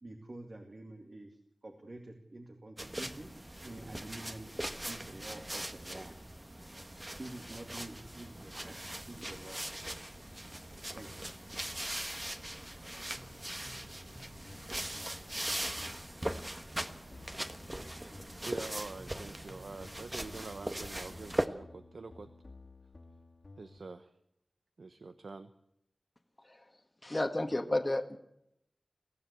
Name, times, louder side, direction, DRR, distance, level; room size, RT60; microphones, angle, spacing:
voice 1, 0.0-3.3 3.6-4.5 4.9-6.2 7.2-8.7 9.1-9.6 10.9-11.3, right 2 dB, 50° right, 4 dB, 2.4 m, -48 dB
sound 1, 2.8-21.5, right 1 dB, 20° right, 1.4 m, -40 dB
sound 2, 13.1-23.8, left 2 dB, 60° left, 2.4 m, -55 dB
voice 2, 18.4-22.3 23.6-24.1 24.8-25.5, right 3 dB, 85° right, 11 dB, 1.0 m, -45 dB
voice 3, 27.0-28.2, left 1 dB, 30° left, 4 dB, 1.6 m, -32 dB
23.5 x 15.5 x 8.4 m, 0.81 s
wide cardioid pair, 70°, 0 cm